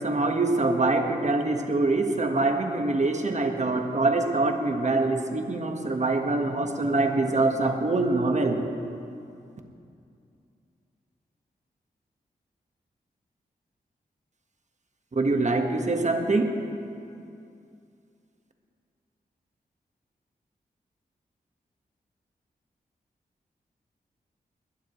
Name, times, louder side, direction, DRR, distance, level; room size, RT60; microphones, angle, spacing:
voice 1, 0.0-8.6 15.1-16.5, right 2 dB, 45° right, 4 dB, 1.5 m, -24 dB
20.5 x 12.0 x 3.2 m, 2.5 s
cardioid pair, 45°, 17 cm